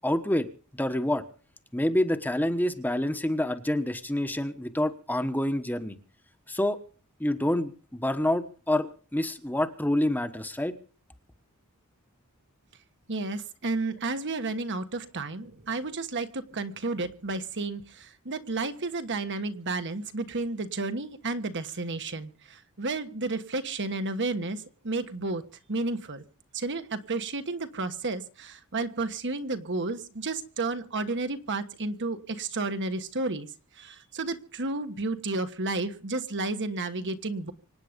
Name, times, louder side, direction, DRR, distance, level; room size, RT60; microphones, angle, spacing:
voice 1, 0.0-0.5 0.7-1.2 1.7-6.0 6.5-6.8 7.2-10.7, left 1 dB, 10° left, 8 dB, 1.1 m, -27 dB
voice 2, 13.1-25.4 25.7-26.2 26.5-33.5 33.8-37.5, right 3 dB, 55° right, 9 dB, 1.4 m, -32 dB
25.5 x 9.3 x 5.3 m, 0.40 s
head